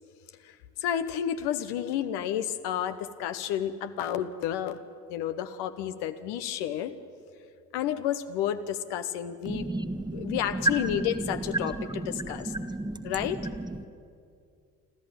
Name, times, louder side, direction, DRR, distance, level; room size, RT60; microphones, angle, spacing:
voice 1, 0.4-4.8 5.1-6.9 7.7-9.7 10.1-12.5 13.0-13.5, left 10 dB, 65° left, 10 dB, 1.0 m, -31 dB
voice 2, 9.5-10.4 12.5-13.1, right 1 dB, 10° right, 8 dB, 1.4 m, -34 dB
25.5 x 14.0 x 8.9 m, 2.3 s
figure-of-eight pair, 45°, 45 cm